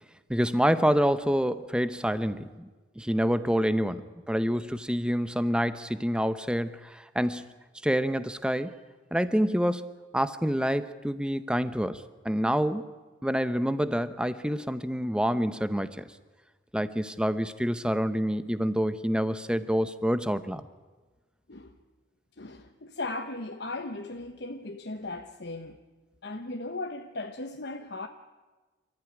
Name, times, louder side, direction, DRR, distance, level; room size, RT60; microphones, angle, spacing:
voice 1, 0.3-2.7 3.0-7.5 7.8-8.7 9.1-12.9 13.2-16.1 16.7-20.7, equal, 5° right, 0.8 m, -27 dB
voice 2, 22.4-25.8 26.2-28.1, left 2 dB, 55° left, 1.1 m, -37 dB
27.5 x 14.0 x 9.9 m
head